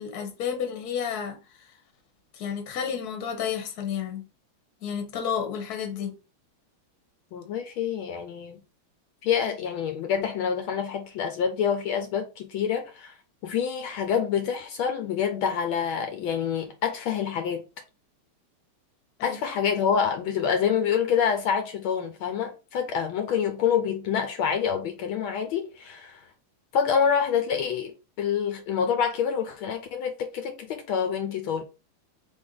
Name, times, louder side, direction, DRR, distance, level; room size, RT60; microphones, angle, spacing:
voice 1, 0.0-1.7 2.3-4.2 4.8-6.1 19.2-19.4, left 7 dB, 55° left, 1.4 m, -31 dB
voice 2, 7.3-8.6 9.2-13.1 13.4-17.6 19.2-26.2 26.7-31.6, left 7 dB, 80° left, 1.4 m, -27 dB
3.5 x 3.4 x 3.8 m
omnidirectional pair, 2.3 m